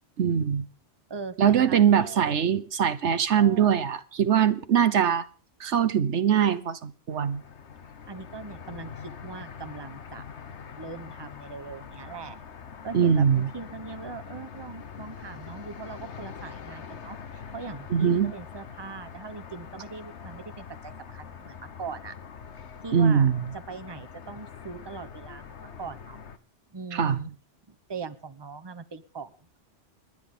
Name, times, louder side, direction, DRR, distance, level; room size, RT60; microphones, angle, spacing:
voice 1, 0.2-0.7 1.4-5.2 5.6-7.4 12.9-13.5 17.9-18.3 22.9-23.4 26.9-27.2, right 8 dB, 70° right, 1.2 m, -22 dB
voice 2, 1.1-2.5 3.3-3.9 8.1-10.2 10.7-12.4 12.8-22.1 22.8-26.2 26.7-27.3 27.7-29.5, right 4 dB, 20° right, 1.0 m, -41 dB
sound 1, 7.1-26.4, left 6 dB, 70° left, 1.4 m, -44 dB
29.0 x 10.5 x 3.9 m
omnidirectional pair, 1.2 m